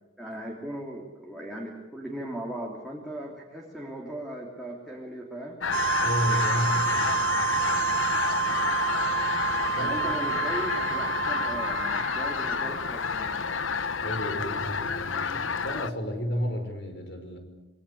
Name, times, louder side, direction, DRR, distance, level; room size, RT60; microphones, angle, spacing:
voice 1, 0.2-5.6 8.6-8.7 9.7-13.4, right 1 dB, ahead, -1 dB, 3.1 m, -38 dB
sound 1, 5.6-15.9, left 6 dB, 85° left, 1.0 m, -29 dB
sound 2, 5.7-13.5, right 8 dB, 65° right, 1.3 m, -29 dB
voice 2, 6.0-7.8 9.7-10.0 14.0-17.4, equal, 60° left, 7 dB, 5.6 m, -32 dB
26.5 x 22.0 x 8.6 m, 1.1 s
head